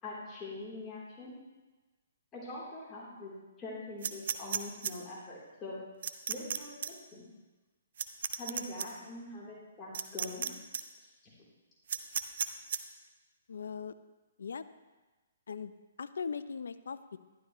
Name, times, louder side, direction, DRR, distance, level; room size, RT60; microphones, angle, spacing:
voice 1, 0.0-1.3 2.3-3.3 3.6-5.8 6.3-7.3 8.4-10.5, left 2 dB, 20° left, -7 dB, 3.5 m, -43 dB
sound 1, 4.0-4.9 6.0-6.6 6.8-6.9 8.0-8.9 9.9-10.5 10.7-10.8 11.9-12.8, right 7 dB, 60° right, 0.7 m, -33 dB
voice 2, 13.5-14.0 14.4-14.7 15.5-17.2, left 6 dB, 75° left, 12 dB, 0.6 m, -40 dB
12.0 x 12.0 x 3.1 m, 1.2 s
hypercardioid pair, 140°, 0 cm